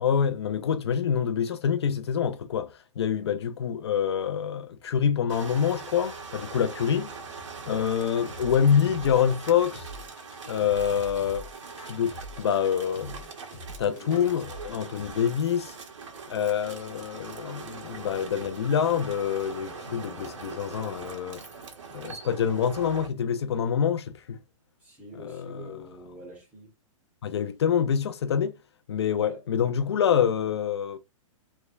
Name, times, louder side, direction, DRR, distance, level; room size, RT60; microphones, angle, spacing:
voice 1, 0.0-7.1 7.7-9.9 10.5-11.4 11.8-13.2 13.8-15.8 16.3-21.4 21.9-24.4 25.2-25.8 27.2-28.5 28.9-31.0, left 8 dB, 50° left, 0.4 m, -26 dB
sound 1, 5.3-23.1, right 4 dB, 65° right, 1.3 m, -42 dB
voice 2, 6.9-7.2 13.8-14.4 24.8-26.7 29.2-29.4, equal, 10° right, 1.0 m, -46 dB
sound 2, 8.0-15.1, equal, 25° left, 0.9 m, -44 dB
3.3 x 3.0 x 2.3 m
hypercardioid pair, 175°, 17 cm